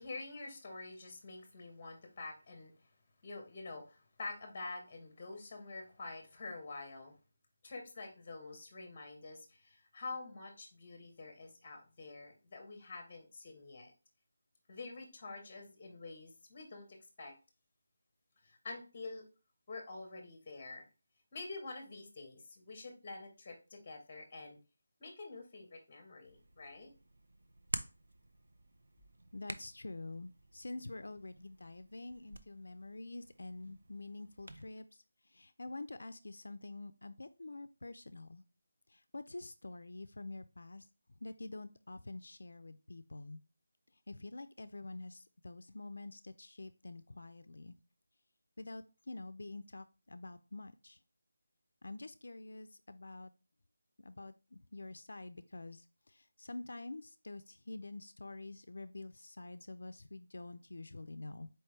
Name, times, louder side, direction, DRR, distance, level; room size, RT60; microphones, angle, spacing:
voice 1, 0.0-2.7 3.2-7.1 7.6-13.9 14.7-17.3 18.4-19.2 19.7-20.9 21.3-24.6 25.0-26.9, left 3 dB, 20° left, 4 dB, 1.0 m, -47 dB
Hands, 26.2-34.7, right 2 dB, 75° right, 0.5 m, -49 dB
voice 2, 29.3-38.4 38.9-40.9 41.2-43.4 44.1-47.7 48.6-51.0 51.8-53.3 54.0-61.5, left 2 dB, 80° left, 11 dB, 0.3 m, -47 dB
4.3 x 3.3 x 3.1 m, 0.31 s
figure-of-eight pair, 175°, 0 cm